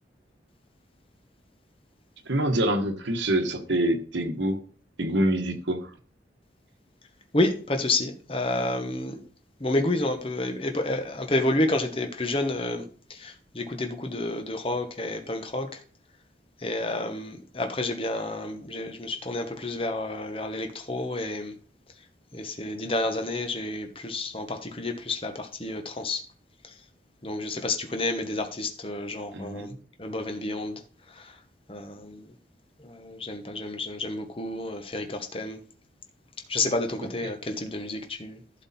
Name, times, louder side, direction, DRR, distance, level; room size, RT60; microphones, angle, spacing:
voice 1, 2.3-4.6 5.0-5.9 29.3-29.8, right 1 dB, 85° right, 1.4 m, -26 dB
voice 2, 7.3-9.2 9.6-15.8 16.6-21.6 22.3-26.2 26.6-26.7 27.2-30.8 31.1-31.4 31.7-32.3 32.8-35.6 36.5-38.6, left 2 dB, 30° left, 1.2 m, -30 dB
11.5 x 6.3 x 4.3 m
head